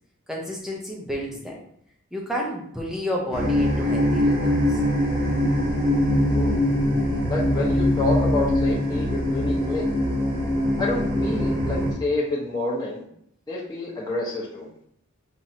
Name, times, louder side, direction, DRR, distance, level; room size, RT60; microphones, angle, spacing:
voice 1, 0.3-1.6 2.1-4.8, equal, ahead, -2 dB, 0.8 m, -31 dB
sound 1, 3.3-11.9, left 1 dB, 45° right, 1.0 m, -22 dB
voice 2, 7.3-9.8 10.8-13.0 13.5-14.7, left 2 dB, 20° left, -7 dB, 1.2 m, -28 dB
5.5 x 3.0 x 2.8 m, 0.68 s
head